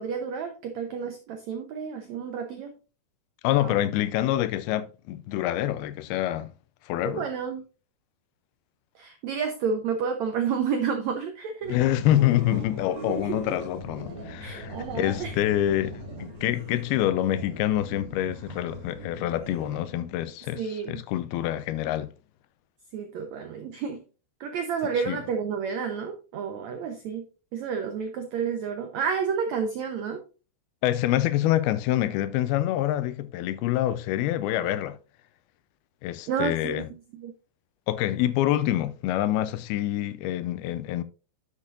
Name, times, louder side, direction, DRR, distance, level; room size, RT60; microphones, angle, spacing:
voice 1, 0.0-2.7 3.6-3.8 7.0-7.6 9.0-11.7 13.1-13.3 14.4-15.3 20.5-21.0 22.9-24.0 24.4-27.2 27.5-30.2 36.3-36.8 37.1-37.3, right 6 dB, 80° right, 1.6 m, -30 dB
voice 2, 3.4-6.5 6.9-7.3 11.7-22.1 25.1-25.2 30.8-35.0 36.0-36.9 37.9-41.0, left 13 dB, 85° left, 2.6 m, -26 dB
sound 1, 11.6-20.2, equal, 45° right, 4.1 m, -40 dB
10.5 x 7.2 x 2.5 m
omnidirectional pair, 4.4 m